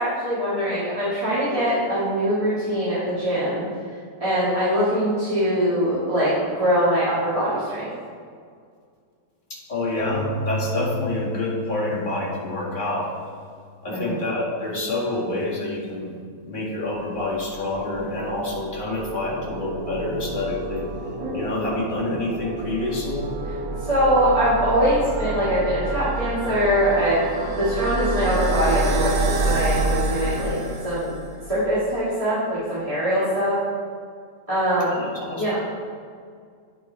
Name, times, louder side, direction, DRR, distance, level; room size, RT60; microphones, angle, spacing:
voice 1, 0.0-3.7 4.2-7.9 13.9-14.2 21.2-21.4 23.8-27.2 27.6-30.6 30.8-31.1 31.5-33.6 34.5-35.1 35.4-35.6, equal, 20° right, -11 dB, 2.0 m, -22 dB
voice 2, 9.5-13.1 13.8-20.8 21.3-23.3 35.0-35.5, left 2 dB, 30° left, -6 dB, 2.1 m, -27 dB
Keyboard (musical), 10.0-13.5, equal, 70° left, 1.4 m, -33 dB
sound 1, 17.3-31.5, right 2 dB, 70° right, 1.5 m, -28 dB
8.9 x 5.6 x 4.5 m, 2.1 s
omnidirectional pair, 1.6 m